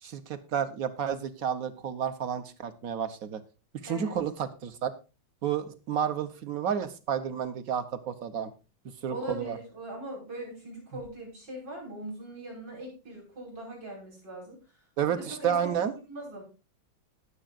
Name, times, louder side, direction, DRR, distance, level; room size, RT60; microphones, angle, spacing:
voice 1, 0.0-3.4 3.8-4.9 5.4-8.5 9.0-9.6 15.0-15.9, right 8 dB, 55° right, 11 dB, 1.3 m, -31 dB
voice 2, 3.9-4.2 9.1-14.6 15.0-15.7 16.1-16.4, right 1 dB, 85° right, -1 dB, 6.3 m, -40 dB
20.0 x 7.1 x 2.5 m, 0.31 s
omnidirectional pair, 1.9 m